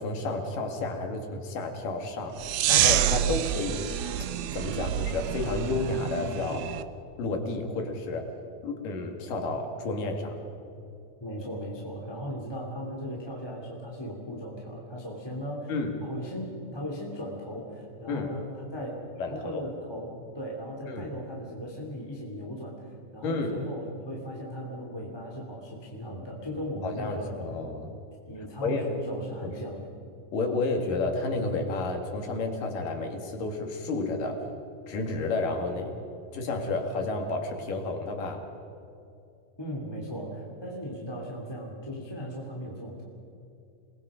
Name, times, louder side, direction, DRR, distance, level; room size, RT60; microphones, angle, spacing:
voice 1, 0.0-3.9 4.5-6.7 7.2-8.3 8.6-10.4 15.7-16.0 18.1-18.3 19.2-19.6 20.9-21.1 23.2-23.6 26.8-28.0 28.6-28.9 29.4-29.5 30.3-34.4 34.9-36.0 36.3-38.5, left 3 dB, 70° left, 3 dB, 3.7 m, -31 dB
sound 1, 2.4-6.8, right 11 dB, 90° right, 1.5 m, -27 dB
voice 2, 11.2-15.7 16.0-27.3 28.3-29.9 39.6-43.0, equal, 10° left, -2 dB, 2.5 m, -37 dB
28.5 x 21.0 x 5.1 m, 2.7 s
omnidirectional pair, 4.0 m